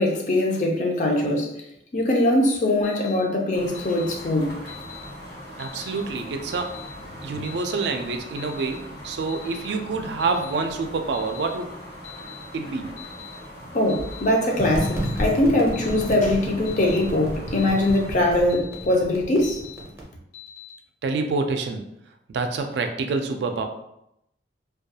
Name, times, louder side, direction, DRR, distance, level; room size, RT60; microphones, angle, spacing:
voice 1, 0.0-1.5 1.9-4.6 13.7-19.6, left 1 dB, 45° left, 0 dB, 0.5 m, -22 dB
Alarm, 2.8-3.2 3.7-4.1 4.7-5.0 5.6-5.9 6.5-6.9 7.4-7.8 8.4-8.7 9.3-9.6 10.2-10.6 11.1-11.5 12.0-12.4 13.0-13.3 13.9-14.2 14.8-15.2 15.7-16.1 16.6-17.0 17.6-17.9 18.5-18.9 19.4-19.8 20.3-20.7, left 13 dB, 60° left, 0.9 m, -43 dB
sound 1, 3.5-18.1, equal, 85° left, 1.1 m, -41 dB
voice 2, 5.6-6.8 7.2-11.7 12.5-12.9 21.0-21.8 22.3-23.7, right 4 dB, 70° right, 5 dB, 0.3 m, -27 dB
sound 2, 14.6-20.0, equal, 15° right, 0.5 m, -32 dB
2.3 x 2.2 x 2.7 m, 0.80 s
head